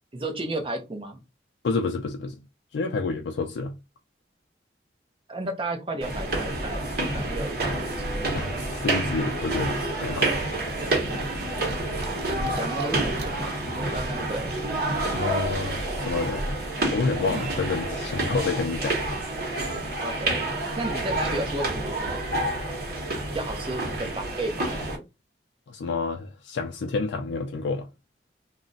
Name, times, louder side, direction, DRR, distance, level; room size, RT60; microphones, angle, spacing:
voice 1, 0.1-1.2 5.3-6.8 7.1-8.6 12.3-14.6 20.0-20.5 20.8-22.2 23.3-25.0, right 2 dB, 30° right, 0.5 m, -33 dB
voice 2, 1.6-2.4 2.7-3.7 8.3-10.3 15.1-16.4 16.9-19.0 25.7-27.9, left 4 dB, 90° left, 0.4 m, -29 dB
sound 1, 6.0-25.0, right 2 dB, 55° right, 1.0 m, -28 dB
sound 2, 11.2-13.3 14.0-14.1 15.8-16.0 16.5-16.6 17.0-17.7, right 4 dB, 70° right, 0.5 m, -42 dB
2.4 x 2.1 x 3.8 m
head